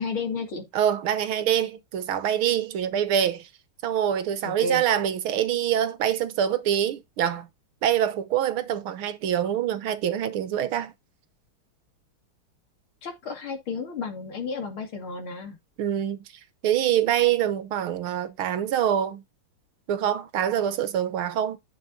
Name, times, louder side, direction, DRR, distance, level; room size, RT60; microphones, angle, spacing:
voice 1, 0.0-0.6 4.4-4.8 13.0-15.6, left 4 dB, 70° left, 3.2 m, -32 dB
voice 2, 0.7-3.5 3.8-7.5 7.8-10.9 15.8-16.2 16.6-19.2 19.9-21.6, right 10 dB, 75° right, 1.8 m, -25 dB
11.0 x 7.2 x 2.8 m
omnidirectional pair, 2.4 m